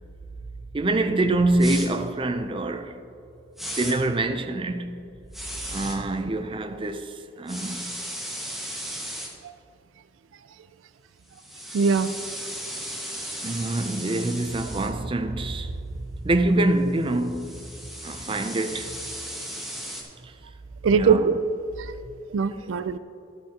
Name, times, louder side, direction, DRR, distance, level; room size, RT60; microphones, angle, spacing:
voice 1, 0.7-3.0 3.8-5.0 5.7-7.9 13.4-17.6 18.0-19.0 20.2-20.3 20.9-21.2, right 2 dB, 25° right, 0.5 m, -25 dB
sound 1, 1.6-1.9 3.6-3.9 5.3-6.0 7.5-9.3 11.3-14.9 17.0-20.0, equal, ahead, 1.6 m, -36 dB
voice 2, 11.7-12.1 20.8-21.3 21.8-21.9 22.3-23.0, right 5 dB, 85° right, 0.4 m, -21 dB
12.0 x 11.5 x 2.9 m
head